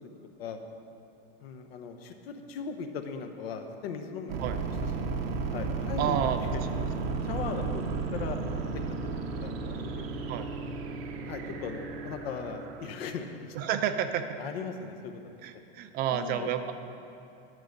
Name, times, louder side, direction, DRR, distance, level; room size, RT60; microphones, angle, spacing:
voice 1, 1.4-5.1 5.5-6.6 7.2-7.8 8.1-8.8 9.4-10.3 11.2-13.6 14.4-15.6 16.1-16.5, left 6 dB, 90° left, 6 dB, 1.0 m, -39 dB
sound 1, 4.3-12.9, right 4 dB, 85° right, 0.9 m, -33 dB
voice 2, 6.0-6.4 6.7-6.8 10.3-10.4 13.5-14.4 15.4-16.7, right 9 dB, 30° right, 9 dB, 0.4 m, -30 dB
11.0 x 4.7 x 6.5 m, 2.8 s
supercardioid pair, 145°, 29 cm